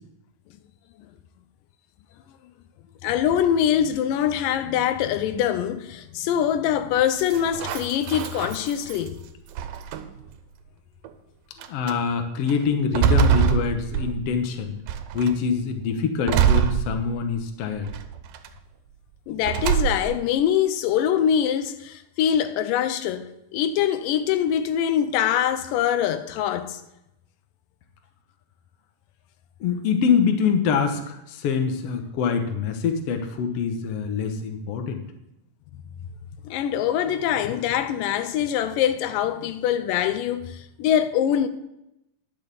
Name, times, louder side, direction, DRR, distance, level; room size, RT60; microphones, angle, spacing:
voice 1, 3.0-9.2 19.3-26.8 36.4-41.5, left 9 dB, 90° left, 2.3 m, -23 dB
sound 1, 7.2-9.1 9.6-10.3 11.0-11.1 11.6-12.0 12.5-14.4 14.9-15.4 16.3-17.4 17.9-18.5 19.4-20.3, right 8 dB, 90° right, 2.4 m, -24 dB
voice 2, 11.7-14.7 15.1-17.9 29.6-35.0, left 6 dB, 60° left, 1.7 m, -24 dB
10.5 x 6.1 x 6.8 m
omnidirectional pair, 3.9 m